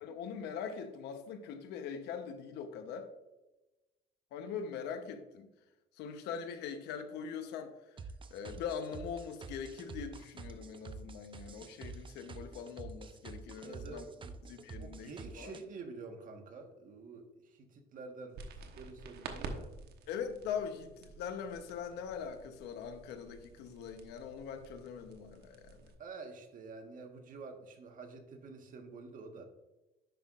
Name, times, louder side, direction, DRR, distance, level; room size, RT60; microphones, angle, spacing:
voice 1, 0.0-3.1 4.3-5.5 6.0-7.7 8.3-14.0 14.4-15.5 20.1-25.9, left 7 dB, 85° left, 8 dB, 0.9 m, -42 dB
sound 1, 8.0-15.6, right 4 dB, 30° right, 0.6 m, -47 dB
voice 2, 13.6-14.3 14.8-18.5 18.7-19.7 26.0-29.4, right 4 dB, 55° right, 4 dB, 1.4 m, -48 dB
sound 2, 18.3-25.9, right 4 dB, 70° right, 1.1 m, -49 dB
10.0 x 5.7 x 2.5 m, 1.0 s
cardioid pair, 110°, 17 cm